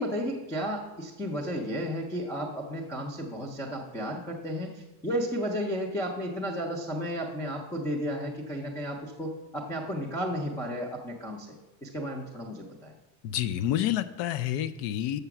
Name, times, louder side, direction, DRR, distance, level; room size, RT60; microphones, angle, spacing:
voice 1, 0.0-11.5 11.8-12.9, equal, 10° left, 0 dB, 0.4 m, -33 dB
voice 2, 13.2-15.2, left 11 dB, 90° left, 14 dB, 0.6 m, -28 dB
6.8 x 6.7 x 5.8 m, 1.1 s
cardioid pair, 180°, 45 cm